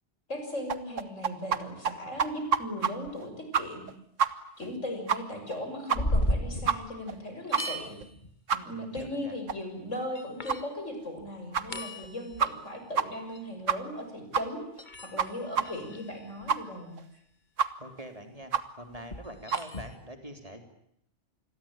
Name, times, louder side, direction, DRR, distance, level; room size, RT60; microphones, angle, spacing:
voice 1, 0.3-3.9 4.6-8.0 8.7-14.7 15.1-17.0, left 1 dB, 80° left, 5 dB, 6.9 m, -38 dB
sound 1, 0.7-1.6 1.8-1.9 2.2-2.9 3.2-3.3 3.5-3.9 4.2-4.3 4.6-4.7 5.1-5.2 5.5-5.6 5.9-6.2 6.7-6.8 7.1-7.2 7.5-7.6 8.0-8.1 8.5-8.6 9.0-9.1 9.5-9.6 9.9-10.0 10.5-10.6 11.0-11.1 11.5-11.6 12.0-12.1 12.4-12.7 12.9-13.0 13.3-13.4 13.7-14.0 14.3-14.4 14.8-14.9 15.2-15.3 15.5-15.6 16.0-16.1 16.5-16.6 17.0-17.1 17.6-17.7 18.0-18.1 18.5-18.6 19.0-19.1 19.5-19.6, right 6 dB, 85° right, 1.7 m, -27 dB
sound 2, 3.1-3.2 5.9-7.2 7.4-8.3 9.0-9.1 9.8-9.9 10.2-10.7 11.2-11.3 11.5-12.6 13.1-13.4 14.8-16.5 18.9-20.0, equal, 40° left, 2.5 m, -34 dB
voice 2, 8.5-9.3 17.8-18.5 18.8-20.6, equal, 30° right, 6 dB, 3.7 m, -44 dB
28.0 x 22.0 x 9.1 m, 0.72 s
omnidirectional pair, 1.3 m